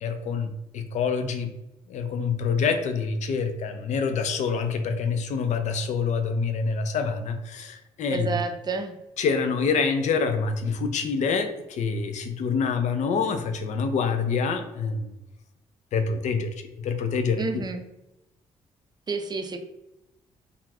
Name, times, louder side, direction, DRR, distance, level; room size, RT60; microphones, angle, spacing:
voice 1, 0.0-1.5 1.9-8.4 9.2-15.1 15.9-16.5 16.8-17.4, left 5 dB, 50° left, 7 dB, 0.4 m, -26 dB
voice 2, 8.1-9.0 17.4-17.8 19.1-19.6, right 4 dB, 25° right, 6 dB, 0.5 m, -29 dB
2.4 x 2.4 x 3.2 m, 0.92 s
hypercardioid pair, 45°, 15 cm